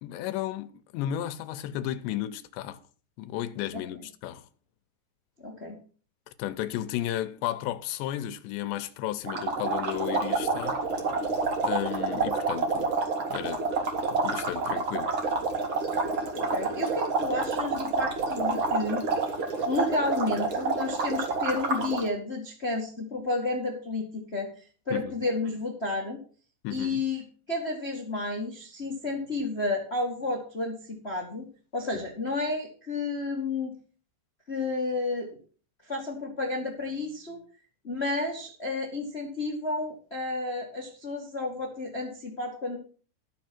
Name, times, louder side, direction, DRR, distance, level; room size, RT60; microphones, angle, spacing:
voice 1, 0.0-2.8 3.2-4.5 6.3-10.8 11.6-12.9 13.3-13.7 14.1-15.2 24.9-25.2 26.6-27.0, left 12 dB, 80° left, 2.8 m, -33 dB
voice 2, 5.4-5.8 16.3-19.3 19.6-26.2 26.7-31.5 31.7-33.7 34.5-35.3 35.8-37.4 37.8-42.8, left 2 dB, 50° left, 0.7 m, -31 dB
sound 1, 9.3-22.1, right 3 dB, 50° right, 1.5 m, -28 dB
13.5 x 6.9 x 6.0 m
omnidirectional pair, 5.3 m